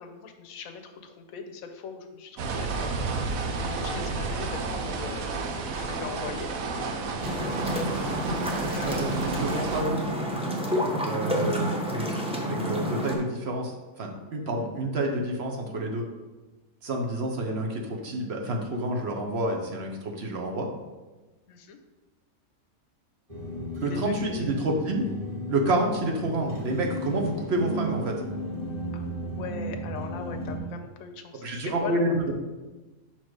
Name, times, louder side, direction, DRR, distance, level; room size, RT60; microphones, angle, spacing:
voice 1, 0.0-3.1 3.5-6.5 8.6-9.2 21.5-21.8 23.8-24.5 28.9-32.2, left 5 dB, 80° left, 5 dB, 1.1 m, -40 dB
sound 1, 2.4-9.8, right 4 dB, 75° right, 1.1 m, -31 dB
sound 2, 7.2-13.2, equal, 5° right, 0.6 m, -29 dB
voice 2, 8.4-10.1 11.0-12.1 12.3-16.0 16.8-20.7 23.8-25.0 25.5-28.2 31.4-32.3, right 1 dB, 55° right, 1 dB, 0.9 m, -29 dB
sound 3, 23.3-30.6, equal, 25° right, 1.8 m, -34 dB
6.0 x 4.4 x 4.7 m, 1.2 s
omnidirectional pair, 1.5 m